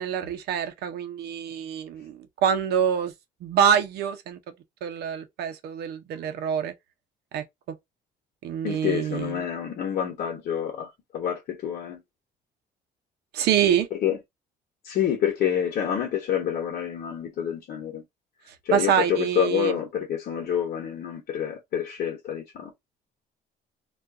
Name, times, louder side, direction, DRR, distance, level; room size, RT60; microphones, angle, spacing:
voice 1, 0.0-3.1 3.4-4.4 4.8-6.7 7.3-7.4 8.4-9.3 13.3-13.9 18.7-19.8, right 8 dB, 75° right, 0.7 m, -25 dB
voice 2, 8.6-12.0 13.9-14.2 14.8-18.0 18.6-22.7, left 9 dB, 60° left, 1.1 m, -28 dB
2.5 x 2.3 x 3.6 m
cardioid pair, 110°, 17 cm